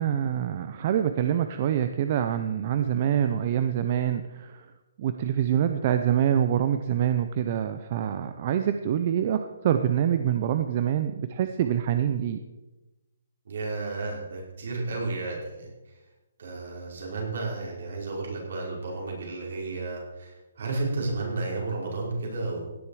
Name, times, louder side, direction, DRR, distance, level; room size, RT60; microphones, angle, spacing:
voice 1, 0.0-4.7 5.0-12.4, right 9 dB, 25° right, 9 dB, 0.5 m, -25 dB
voice 2, 13.4-15.7 16.4-22.7, right 3 dB, 55° right, -2 dB, 5.1 m, -32 dB
16.5 x 10.5 x 4.9 m, 1.1 s
hypercardioid pair, 180°, 0 cm